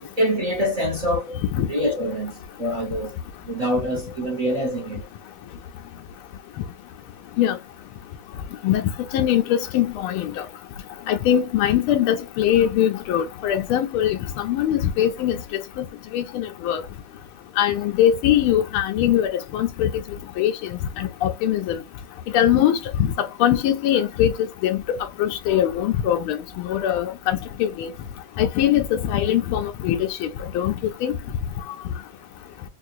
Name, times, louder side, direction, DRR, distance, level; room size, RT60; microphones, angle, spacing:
voice 1, 0.0-3.1 3.4-5.1, equal, 30° right, 0.7 m, -25 dB
voice 2, 9.1-10.5 11.1-15.8 16.1-16.8 17.6-19.9 20.4-20.5 21.0-21.8 22.3-27.9 28.4-30.3 30.5-30.7 31.0-31.1, left 11 dB, 90° left, 1.5 m, -22 dB
4.6 x 2.5 x 2.6 m
omnidirectional pair, 2.3 m